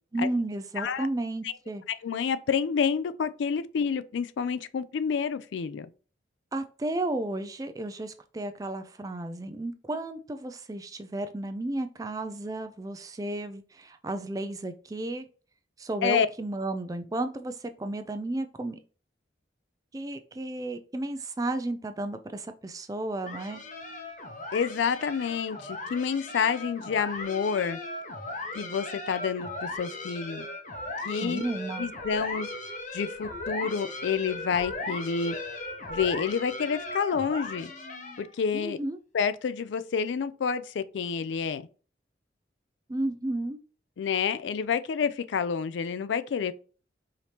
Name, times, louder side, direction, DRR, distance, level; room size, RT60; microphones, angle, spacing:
voice 1, 0.1-1.8 6.5-15.3 15.8-18.8 19.9-23.6 31.2-31.9 38.5-39.0 42.9-43.6, right 2 dB, 20° right, 0.3 m, -33 dB
voice 2, 0.8-1.1 1.4-1.5 1.9-5.9 16.0-16.3 24.5-27.8 28.5-30.5 31.0-31.4 31.8-32.5 32.9-35.4 35.9-37.7 38.2-38.8 39.1-41.7 44.0-46.5, left 6 dB, 80° left, 0.4 m, -29 dB
sound 1, 23.3-38.4, left 2 dB, 40° left, 0.8 m, -37 dB
4.9 x 2.8 x 2.9 m
head